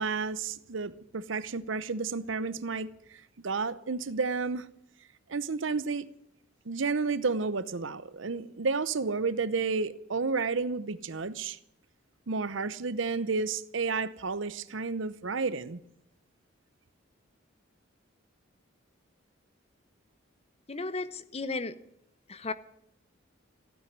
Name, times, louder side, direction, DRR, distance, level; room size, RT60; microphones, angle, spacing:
voice 1, 0.0-4.7 5.3-6.1 6.7-11.6 12.3-15.8, right 4 dB, 75° right, 0.8 m, -31 dB
voice 2, 20.7-21.8 22.3-22.5, left 3 dB, 30° left, 0.8 m, -34 dB
15.5 x 9.4 x 9.4 m
head